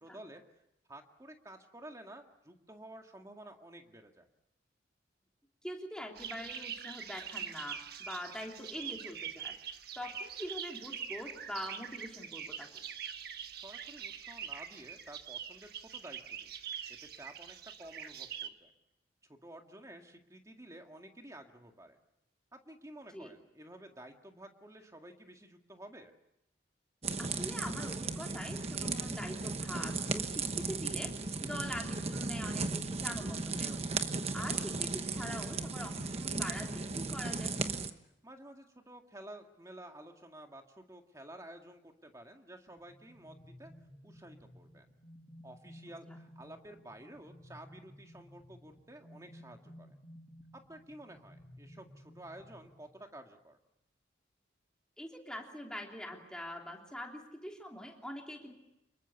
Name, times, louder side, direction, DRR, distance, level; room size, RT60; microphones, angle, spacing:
voice 1, 0.0-0.6 0.9-4.3 13.5-16.5 17.0-18.7 19.3-22.0 22.5-26.1 38.2-43.7 44.0-44.9 45.4-50.0 50.5-53.6, right 1 dB, 15° right, 4 dB, 2.0 m, -52 dB
voice 2, 5.6-9.5 9.9-12.8 23.1-23.3 27.2-31.1 31.4-34.0 34.3-37.6 55.0-58.5, equal, 5° left, 0 dB, 3.3 m, -44 dB
sound 1, 6.2-18.5, right 8 dB, 55° right, 1.3 m, -44 dB
sound 2, 27.0-37.9, right 4 dB, 35° right, 1.1 m, -36 dB
sound 3, 42.7-53.1, equal, 30° left, 6.9 m, -56 dB
26.5 x 22.5 x 7.0 m, 0.86 s
head